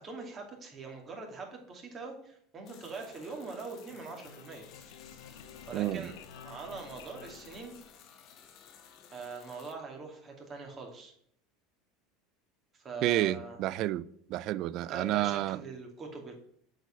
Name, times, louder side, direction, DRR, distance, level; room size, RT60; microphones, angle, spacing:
voice 1, 0.0-5.1 5.7-7.7 9.1-11.1 12.7-13.6 14.9-16.3, right 4 dB, 30° right, 2.4 m, -43 dB
sound 1, 2.6-9.7, left 8 dB, 55° left, 1.4 m, -56 dB
sound 2, 3.6-8.4, left 7 dB, 80° left, 0.9 m, -52 dB
voice 2, 5.7-6.1 13.0-14.0 14.3-15.6, right 15 dB, 55° right, 0.4 m, -30 dB
7.7 x 4.9 x 5.8 m
supercardioid pair, 115°, 0 cm